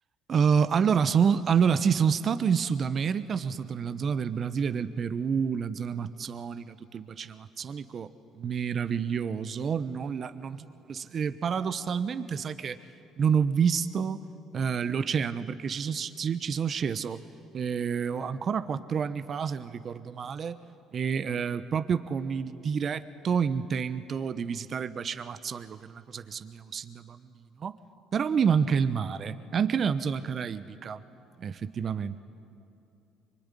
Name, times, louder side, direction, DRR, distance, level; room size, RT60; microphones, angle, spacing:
voice 1, 0.3-12.8 13.2-14.2 14.5-17.2 17.5-20.6 20.9-27.3 27.6-27.8 28.1-31.0 31.4-32.2, right 6 dB, 45° right, 12 dB, 1.0 m, -28 dB
24.5 x 24.0 x 10.0 m, 2.7 s
hypercardioid pair, 60°, 0 cm